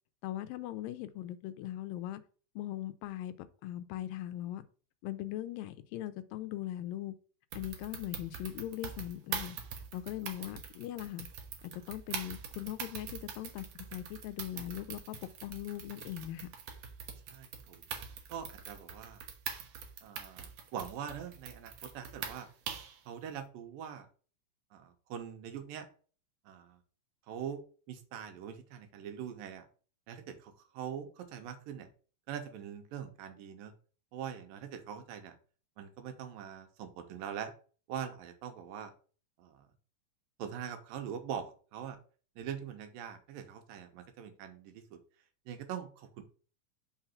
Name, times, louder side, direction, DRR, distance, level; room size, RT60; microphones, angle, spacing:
voice 1, 0.2-2.2 2.6-4.6 5.0-7.1 7.5-9.6 9.9-11.3 11.9-16.5, left 13 dB, 85° left, 2.3 m, -40 dB
sound 1, 7.5-23.0, right 7 dB, 65° right, 1.9 m, -43 dB
voice 2, 17.3-17.8 18.3-19.2 20.0-22.5 23.1-24.1 24.7-25.9 26.5-26.8 27.3-27.6 27.9-29.6 30.1-31.9 32.3-33.7 34.1-35.4 35.8-37.5 37.9-38.9 39.4-39.7 40.4-42.0 42.4-45.0 45.5-46.2, right 8 dB, 85° right, 2.6 m, -43 dB
5.8 x 3.9 x 5.7 m
omnidirectional pair, 4.0 m